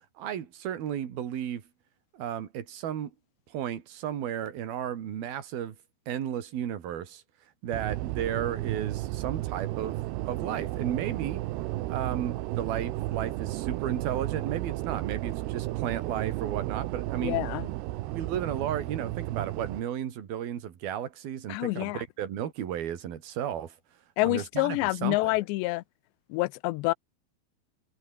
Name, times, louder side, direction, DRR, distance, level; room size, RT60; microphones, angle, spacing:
voice 1, 0.2-1.6 2.1-3.1 3.5-5.8 6.1-7.2 7.6-10.0 10.2-11.4 11.9-17.4 18.1-23.7 24.2-25.3, right 10 dB, 60° right, 4.2 m, -33 dB
sound 1, 7.7-19.8, right 17 dB, 80° right, 2.9 m, -33 dB
voice 2, 17.2-17.7 21.5-22.0 24.2-25.8 26.3-26.9, left 21 dB, 85° left, 2.9 m, -27 dB
omnidirectional pair, 4.9 m